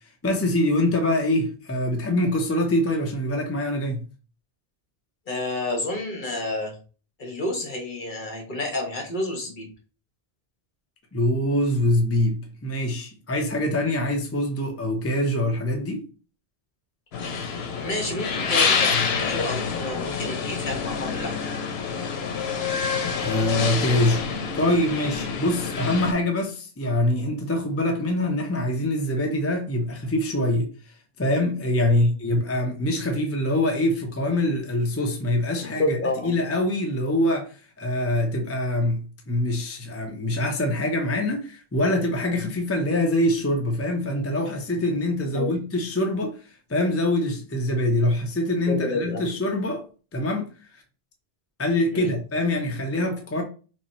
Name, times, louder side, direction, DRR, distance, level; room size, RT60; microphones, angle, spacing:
voice 1, 0.2-4.0 11.1-16.0 23.2-24.3 24.5-36.0 36.2-46.4 46.7-49.8 50.1-50.5 50.7-50.8 51.6-53.4, left 1 dB, 20° left, 0.5 m, -24 dB
voice 2, 5.3-6.8 7.2-9.7 17.8-21.3 31.8-32.0 35.8-36.3 45.3-45.6 48.7-49.3 51.9-52.1, left 2 dB, 55° left, 1.2 m, -29 dB
sound 1, 17.1-26.1, left 5 dB, 80° left, 0.9 m, -27 dB
3.0 x 2.7 x 4.1 m
omnidirectional pair, 1.0 m